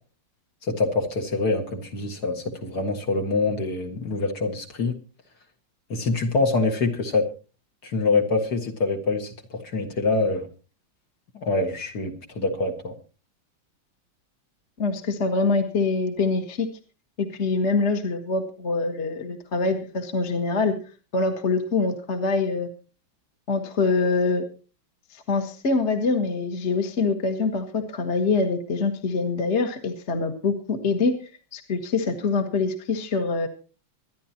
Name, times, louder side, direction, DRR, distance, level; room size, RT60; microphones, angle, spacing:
voice 1, 0.7-4.9 5.9-7.3 7.8-10.5 11.3-12.9, left 3 dB, 55° left, 3 dB, 2.2 m, -25 dB
voice 2, 14.8-16.7 17.2-20.7 21.1-22.7 23.5-24.4 25.1-31.1 31.5-33.5, left 4 dB, 35° left, 6 dB, 1.6 m, -24 dB
24.5 x 10.5 x 2.9 m, 0.34 s
omnidirectional pair, 2.2 m